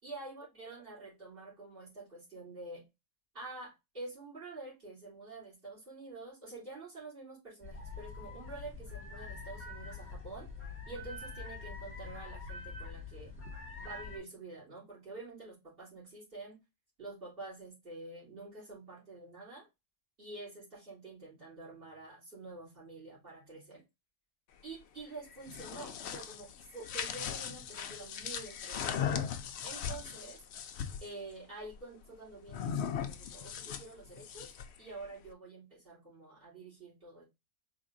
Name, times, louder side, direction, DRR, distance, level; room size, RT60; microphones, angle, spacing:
voice 1, 0.0-2.9 3.3-10.5 10.9-13.3 13.8-16.6 17.0-19.7 20.2-23.8 24.6-29.3 29.6-30.4 31.0-37.2, right 2 dB, 35° right, -6 dB, 3.5 m, -48 dB
sound 1, 7.6-14.2, left 4 dB, 10° left, 1.4 m, -45 dB
sound 2, 25.3-31.1 32.5-34.8, left 8 dB, 70° left, 0.6 m, -38 dB
4.8 x 3.7 x 2.6 m, 0.23 s
omnidirectional pair, 1.7 m